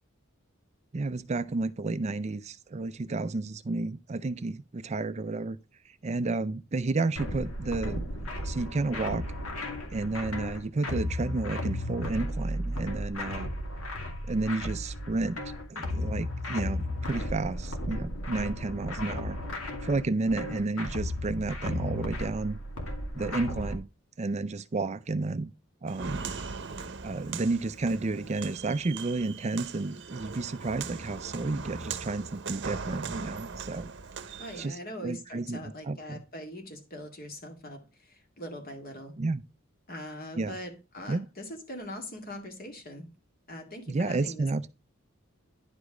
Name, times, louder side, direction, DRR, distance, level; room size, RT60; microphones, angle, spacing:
voice 1, 0.9-5.6 5.9-8.0 8.4-9.3 9.9-13.5 14.3-15.4 15.7-19.4 19.8-22.6 23.2-23.9 24.2-25.5 25.8-26.3 27.0-33.9 34.6-36.2 39.2-39.4 40.4-40.6 41.1-41.3 43.9-44.7, right 3 dB, 30° right, 0.4 m, -31 dB
sound 1, 7.2-23.8, left 1 dB, 80° left, 2.3 m, -34 dB
Walk footsteps, 25.9-34.7, right 5 dB, 55° right, 0.8 m, -39 dB
voice 2, 34.4-39.2 39.9-43.1 43.5-44.7, equal, 45° left, 2.3 m, -42 dB
10.5 x 5.0 x 4.9 m
head